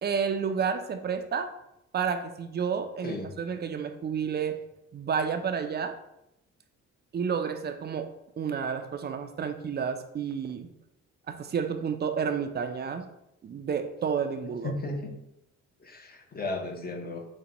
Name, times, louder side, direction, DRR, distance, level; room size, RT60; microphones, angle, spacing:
voice 1, 0.0-1.5 1.9-4.6 4.9-6.0 7.1-8.1 8.4-10.7 11.3-13.0 13.4-14.7, right 6 dB, 35° right, 7 dB, 0.4 m, -30 dB
voice 2, 3.0-3.4 14.6-15.1 15.8-17.3, left 2 dB, 30° left, 3 dB, 0.7 m, -35 dB
5.1 x 2.2 x 2.8 m, 0.85 s
cardioid pair, 90°, 30 cm